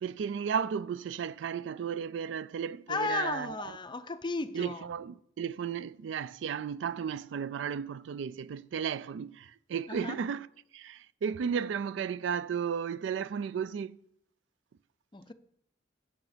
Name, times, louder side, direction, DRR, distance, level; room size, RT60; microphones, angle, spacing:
voice 1, 0.0-3.6 4.5-10.5 10.7-14.0, right 7 dB, 75° right, 0.3 m, -34 dB
voice 2, 2.9-4.9 9.9-10.2 15.1-15.3, left 3 dB, 25° left, 0.5 m, -34 dB
8.4 x 6.7 x 5.0 m
head